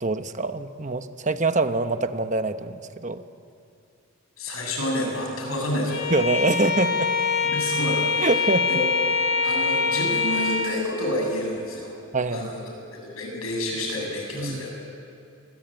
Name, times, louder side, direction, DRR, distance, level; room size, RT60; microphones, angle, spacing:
voice 1, 0.0-3.2 6.1-7.1 8.2-8.7 12.1-12.5 14.3-14.7, right 2 dB, 35° right, 9 dB, 1.0 m, -25 dB
voice 2, 4.4-6.0 7.4-8.3 8.7-8.8 9.4-11.9 12.3-12.6 12.9-14.7, left 1 dB, 90° left, 1 dB, 8.0 m, -29 dB
Bowed string instrument, 5.9-10.8, left 5 dB, 70° left, 4.1 m, -24 dB
27.5 x 22.5 x 9.0 m, 2.5 s
head